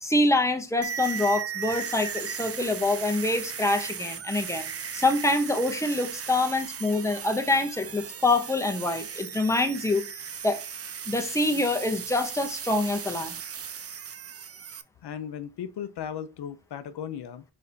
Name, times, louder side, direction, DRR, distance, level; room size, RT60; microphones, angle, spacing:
voice 1, 0.0-10.0 10.4-10.6 11.1-13.4, left 2 dB, 5° left, 0.7 m, -25 dB
sound 1, 0.8-14.8, right 7 dB, 40° right, 0.4 m, -37 dB
voice 2, 15.0-17.4, left 8 dB, 85° left, 0.5 m, -36 dB
4.2 x 3.9 x 2.6 m
wide cardioid pair, 85°, 39 cm